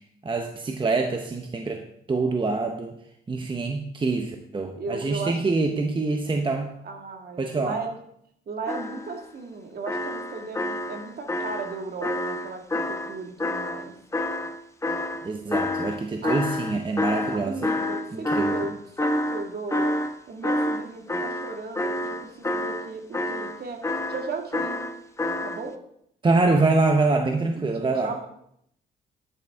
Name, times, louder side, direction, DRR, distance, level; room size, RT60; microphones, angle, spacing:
voice 1, 0.2-3.0 3.3-6.7 7.4-7.8 15.2-17.7 18.1-18.5 26.2-28.1, right 3 dB, 25° right, 4 dB, 1.0 m, -25 dB
voice 2, 4.8-5.4 6.8-8.0 8.5-13.9 16.2-16.4 17.3-19.9 20.3-23.8 24.1-24.9 25.4-25.8 27.3-28.3, right 4 dB, 50° right, 3 dB, 2.1 m, -36 dB
sound 1, 8.7-9.2 9.9-13.9 14.1-20.2 20.4-25.6, left 1 dB, 15° left, 0.9 m, -28 dB
10.5 x 9.8 x 3.7 m, 0.72 s
cardioid pair, 90°, 20 cm